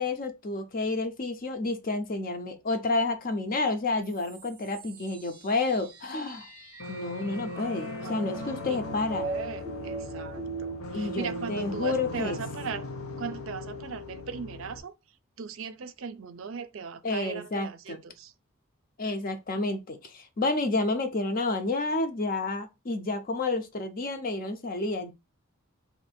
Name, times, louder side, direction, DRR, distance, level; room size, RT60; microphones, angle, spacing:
voice 1, 0.0-6.5 6.9-9.3 10.9-12.4 17.0-18.0 19.0-25.1, left 3 dB, 40° left, 0.6 m, -30 dB
sound 1, 4.0-12.2, right 3 dB, 20° right, 0.7 m, -41 dB
sound 2, 6.8-14.8, left 3 dB, 85° left, 0.6 m, -39 dB
voice 2, 8.0-8.8 9.2-12.8 13.2-14.9 15.4-18.3, right 6 dB, 70° right, 0.5 m, -38 dB
2.6 x 2.6 x 4.2 m
head